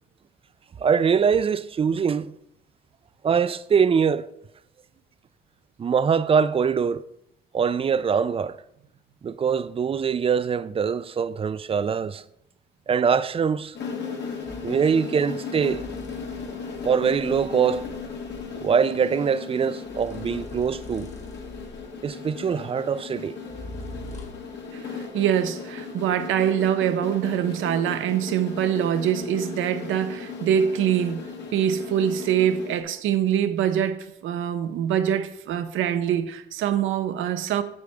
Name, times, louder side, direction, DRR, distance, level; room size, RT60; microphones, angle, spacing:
voice 1, 0.8-2.3 3.2-4.3 5.8-7.0 7.5-8.6 9.2-12.2 12.9-13.7 14.6-15.8 16.8-17.9 18.6-21.1 22.0-23.6, right 6 dB, 30° right, 0.3 m, -23 dB
sound 1, 13.7-32.8, left 5 dB, 65° left, 1.5 m, -36 dB
sound 2, 14.4-14.8 15.7-18.7 19.9-22.1 23.5-24.6, left 1 dB, 35° left, 1.4 m, -43 dB
voice 2, 16.4-16.7 24.7-31.2 31.5-37.6, right 9 dB, 85° right, 0.7 m, -24 dB
7.9 x 7.7 x 3.5 m
cardioid pair, 90°, 20 cm